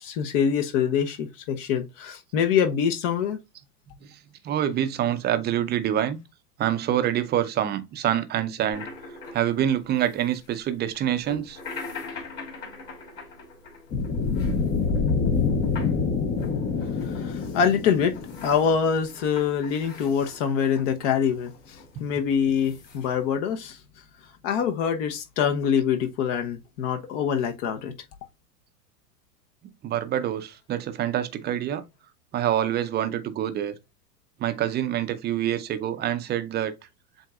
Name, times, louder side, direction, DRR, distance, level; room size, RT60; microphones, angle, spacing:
voice 1, 0.0-3.4 17.0-18.2 18.4-23.8 24.4-27.9, left 7 dB, 50° left, 1.0 m, -25 dB
voice 2, 4.4-6.2 6.6-8.9 9.3-11.6 29.8-31.8 32.3-33.7 34.4-36.7, right 11 dB, 20° right, 0.6 m, -26 dB
sound 1, 8.7-23.3, left 4 dB, 70° left, 3.3 m, -44 dB
sound 2, 13.9-18.8, left 5 dB, 20° left, 0.7 m, -26 dB
7.6 x 2.7 x 2.4 m
hypercardioid pair, 95°, 48 cm